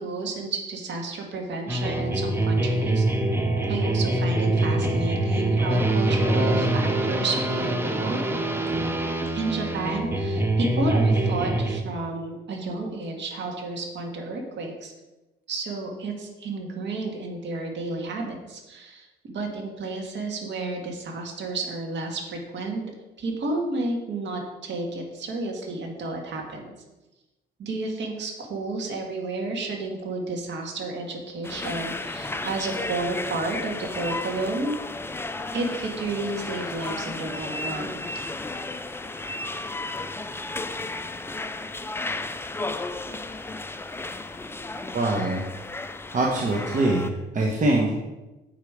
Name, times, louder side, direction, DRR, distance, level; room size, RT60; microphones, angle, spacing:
voice 1, 0.0-3.1 3.7-8.2 9.3-14.9 15.5-22.8 23.2-26.7 27.6-34.7 35.5-38.0, right 3 dB, 65° right, 1 dB, 1.8 m, -31 dB
sound 1, 1.7-11.8, right 2 dB, 10° right, 0.8 m, -24 dB
sound 2, 31.4-47.1, left 2 dB, 10° left, 0.4 m, -33 dB
voice 2, 44.9-45.4 46.1-47.9, right 2 dB, 40° right, -1 dB, 1.2 m, -23 dB
7.4 x 5.3 x 4.8 m, 1.1 s
cardioid pair, 90°, 20 cm